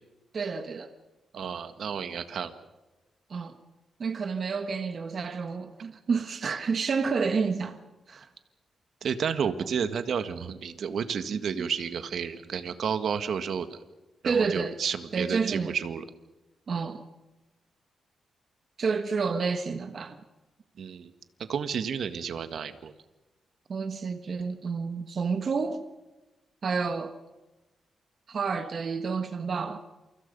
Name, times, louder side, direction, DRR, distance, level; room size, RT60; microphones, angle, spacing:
voice 1, 0.3-0.9 3.3-3.5 4.0-7.8 8.1-8.3 11.6-11.7 14.2-14.8 15.1-15.7 16.7-17.0 18.8-20.2 23.7-25.8 26.6-27.1 28.3-29.8, right 5 dB, 45° right, 1.4 m, -29 dB
voice 2, 1.3-2.5 9.0-13.8 14.2-16.0 20.8-21.1 21.4-22.9, right 7 dB, 65° right, 1.7 m, -31 dB
28.5 x 25.0 x 5.5 m
wide cardioid pair, 135°, 0 cm